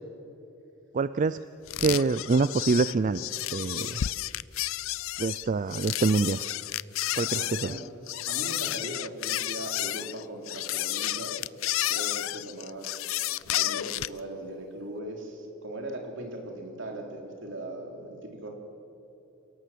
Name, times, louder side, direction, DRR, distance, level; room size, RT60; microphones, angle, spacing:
voice 1, 0.9-1.4 1.8-4.0 5.2-6.4 7.2-7.7, right 4 dB, 40° right, 14 dB, 0.4 m, -26 dB
sound 1, 1.7-14.2, left 14 dB, 70° left, 0.5 m, -31 dB
voice 2, 7.4-7.8 8.3-11.3 11.9-13.0 13.5-18.5, right 1 dB, 65° right, 2 dB, 3.7 m, -39 dB
28.5 x 17.5 x 7.6 m, 2.9 s
head